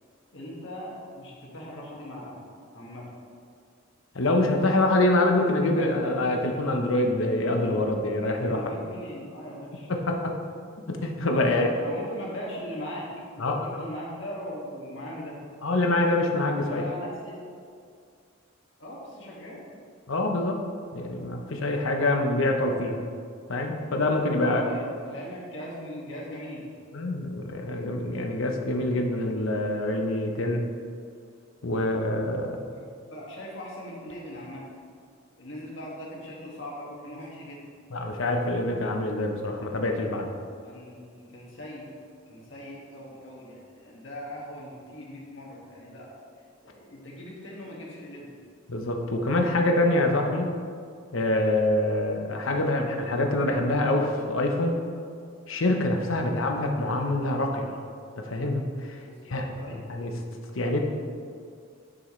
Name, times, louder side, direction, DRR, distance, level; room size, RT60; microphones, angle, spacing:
voice 1, 0.3-2.4 2.7-3.0 8.5-9.9 11.3-13.1 13.4-15.4 16.6-17.4 18.8-19.6 24.4-26.6 33.1-34.7 35.4-37.6 40.6-41.9 42.3-46.1 46.6-48.3 56.1-56.4 59.0-59.8, equal, 65° left, -4 dB, 2.0 m, -40 dB
voice 2, 4.1-8.7 9.9-10.3 10.9-11.7 13.4-13.8 15.6-16.8 20.1-20.6 20.9-23.0 23.5-24.6 26.9-30.7 31.6-32.6 37.9-40.3 48.7-50.5 51.1-54.8 55.5-57.8 58.2-59.0 59.3-60.1 60.5-60.8, left 2 dB, 85° left, 2 dB, 0.9 m, -25 dB
10.5 x 6.2 x 3.2 m, 2.2 s
head